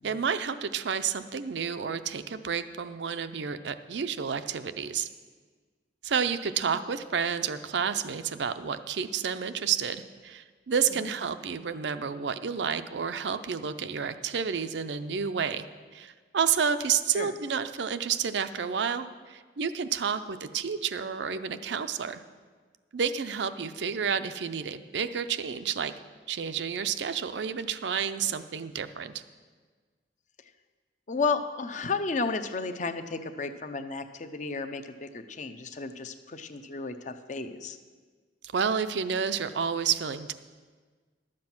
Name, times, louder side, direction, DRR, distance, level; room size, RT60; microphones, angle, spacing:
voice 1, 0.0-5.1 6.0-15.7 15.9-22.2 22.9-25.9 26.3-29.2 38.5-40.3, right 7 dB, 75° right, 11 dB, 0.5 m, -30 dB
voice 2, 31.1-37.8, left 4 dB, 45° left, 9 dB, 0.6 m, -33 dB
12.0 x 7.6 x 5.9 m, 1.5 s
head